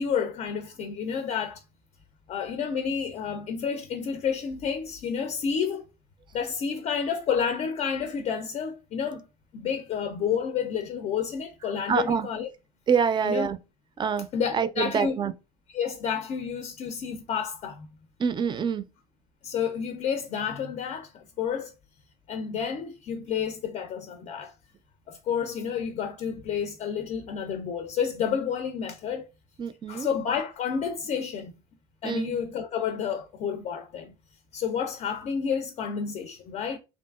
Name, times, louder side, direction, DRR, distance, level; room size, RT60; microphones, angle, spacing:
voice 1, 0.0-1.6 2.3-5.8 6.3-9.3 9.5-12.5 13.3-13.5 14.3-15.2 15.7-17.9 19.4-21.7 22.3-24.5 25.1-29.3 29.9-31.5 32.0-34.1 34.5-36.8, left 7 dB, 55° left, 0.5 m, -30 dB
voice 2, 11.9-12.3 12.9-13.6 14.0-15.3 18.2-18.8 29.6-30.1 32.0-32.3, right 6 dB, 35° right, 0.4 m, -26 dB
2.7 x 2.5 x 2.3 m
supercardioid pair, 85°, 14 cm